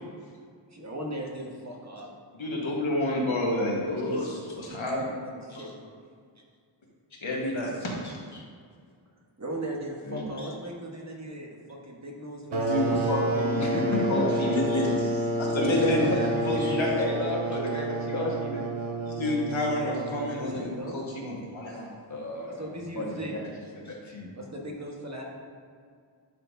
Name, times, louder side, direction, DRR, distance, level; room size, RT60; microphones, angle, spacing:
voice 1, 0.7-2.1 4.9-5.9 9.4-13.0 15.8-16.3 20.5-21.0 22.6-23.3 24.4-25.2, right 1 dB, 35° right, -1 dB, 1.3 m, -38 dB
voice 2, 2.3-5.1 7.2-8.2 12.5-16.0 16.5-16.9 19.1-21.9, left 1 dB, 75° left, -3 dB, 1.5 m, -29 dB
voice 3, 10.0-10.5 13.6-14.6 15.7-18.6 22.1-24.3, left 1 dB, 35° left, -3 dB, 1.6 m, -33 dB
sound 1, 12.5-20.9, right 1 dB, 85° right, 0.9 m, -29 dB
11.0 x 4.4 x 2.7 m, 2.1 s
wide cardioid pair, 65°, 47 cm